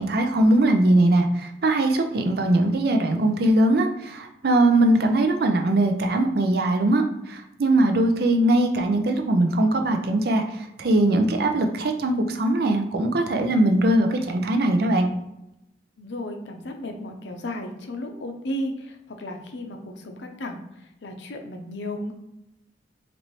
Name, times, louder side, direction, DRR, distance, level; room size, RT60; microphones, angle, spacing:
voice 1, 0.0-15.1, right 1 dB, 60° right, 5 dB, 0.5 m, -21 dB
voice 2, 16.0-20.6 21.0-22.1, left 1 dB, 80° left, 4 dB, 0.6 m, -34 dB
4.2 x 2.6 x 3.0 m, 0.85 s
head